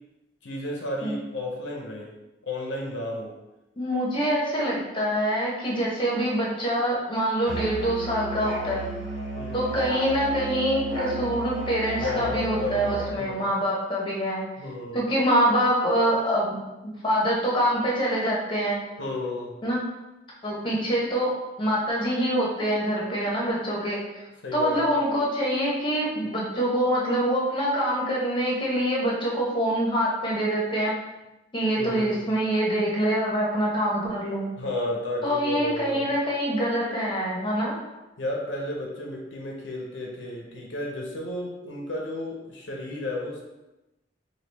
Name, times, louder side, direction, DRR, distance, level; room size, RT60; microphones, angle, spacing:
voice 1, 0.4-2.1 2.4-3.3 9.3-9.7 12.0-13.4 14.6-15.0 19.0-19.5 24.4-24.9 31.8-32.3 34.6-36.1 38.2-43.4, left 1 dB, 85° left, -1 dB, 0.7 m, -33 dB
voice 2, 3.8-8.9 9.5-14.4 14.9-16.6 16.8-18.8 19.6-19.8 20.4-24.2 24.5-30.9 31.5-34.5 35.2-37.7, equal, 25° left, -4 dB, 1.0 m, -25 dB
Musical instrument, 7.5-13.2, right 2 dB, 65° right, 1.2 m, -33 dB
4.8 x 2.4 x 3.4 m, 1.0 s
head